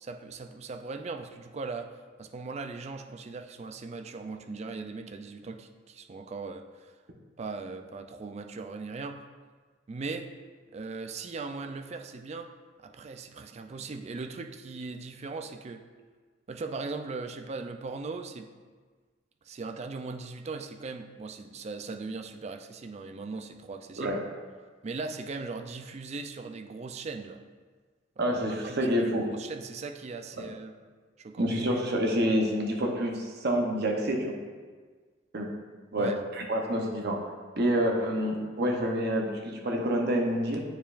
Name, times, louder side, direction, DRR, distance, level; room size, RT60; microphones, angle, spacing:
voice 1, 0.0-1.9 2.2-6.9 7.4-9.2 9.9-10.3 10.7-12.5 12.8-15.8 16.5-18.5 19.5-24.2 24.8-27.4 28.5-30.8 31.2-31.5 36.0-36.1, right 4 dB, 35° right, 5 dB, 0.4 m, -39 dB
voice 2, 28.2-29.3 30.4-30.5 31.4-34.3 35.3-35.5 35.9-37.3 37.6-40.6, equal, 60° right, 1 dB, 0.8 m, -28 dB
8.9 x 4.6 x 2.5 m, 1.5 s
head